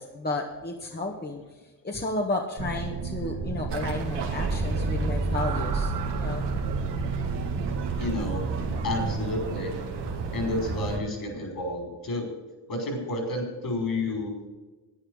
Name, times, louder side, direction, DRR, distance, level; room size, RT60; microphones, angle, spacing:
voice 1, 0.0-1.4 1.8-6.5, left 2 dB, 25° left, 2 dB, 1.6 m, -32 dB
sound 1, 2.6-9.2, right 5 dB, 50° right, 1.5 m, -32 dB
sound 2, 3.7-11.0, right 3 dB, 85° right, 2.0 m, -31 dB
voice 2, 8.0-8.4 8.8-9.8 10.3-12.3 12.7-14.3, left 2 dB, 60° left, 2 dB, 5.2 m, -30 dB
11.0 x 9.6 x 6.4 m, 1.2 s
cardioid pair, 70°, 40 cm